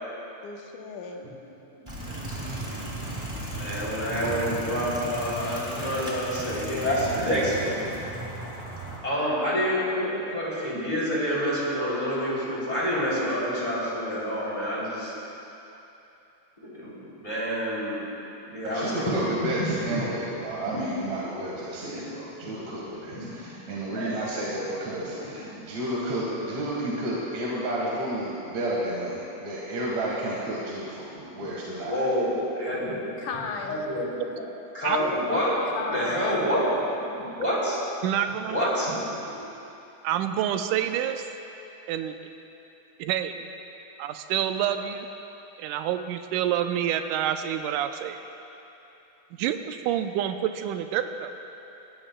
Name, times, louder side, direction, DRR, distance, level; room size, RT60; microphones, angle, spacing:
voice 1, 0.4-1.2 33.2-33.8 35.7-36.5, left 5 dB, 80° left, 2 dB, 2.4 m, -35 dB
sound 1, 1.9-9.0, right 2 dB, 10° right, 1.5 m, -35 dB
voice 2, 3.5-7.8 9.0-15.1 16.6-18.1 18.4-19.0 19.6-19.7 20.7-20.8 21.8-22.0 23.2-23.3 23.8-24.2 25.3-25.5 31.8-33.3 33.7-34.4 34.8-37.8 38.5-38.9 39.2-39.5, equal, 15° left, -7 dB, 2.9 m, -28 dB
voice 3, 18.6-32.0, right 1 dB, 60° right, -5 dB, 2.7 m, -31 dB
voice 4, 38.0-38.7 40.0-41.3 41.9-42.1 43.0-43.4 44.0-45.1 45.6-48.2 49.4-51.3, right 10 dB, 85° right, 7 dB, 2.1 m, -27 dB
20.5 x 15.5 x 2.3 m, 2.9 s
omnidirectional pair, 3.6 m